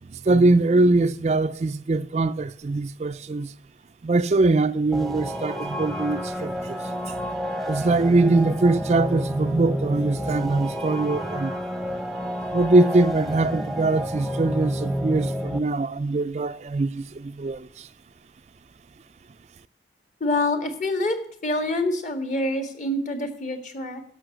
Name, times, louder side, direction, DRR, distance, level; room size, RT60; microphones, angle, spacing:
voice 1, 0.0-3.5 4.0-6.8 7.1-7.2 7.6-11.6 12.5-17.9, right 2 dB, 35° right, 0.3 m, -22 dB
sound 1, 4.9-15.6, equal, ahead, 0.8 m, -30 dB
voice 2, 20.2-21.2 21.4-24.0, left 2 dB, 40° left, 1.7 m, -26 dB
12.5 x 5.8 x 7.7 m
head